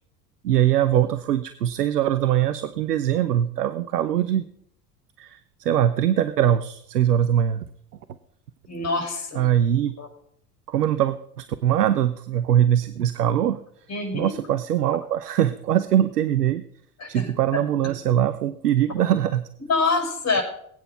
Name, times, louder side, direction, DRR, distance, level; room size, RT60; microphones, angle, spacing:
voice 1, 0.4-4.5 5.2-7.6 9.3-9.9 10.7-13.6 14.1-16.6 17.1-19.4, right 11 dB, 80° right, 13 dB, 0.8 m, -22 dB
voice 2, 8.7-9.4 10.0-10.1 13.9-14.3 17.0-17.3 19.7-20.4, left 3 dB, 35° left, 4 dB, 5.9 m, -25 dB
20.5 x 9.0 x 5.4 m, 0.69 s
figure-of-eight pair, 70°, 47 cm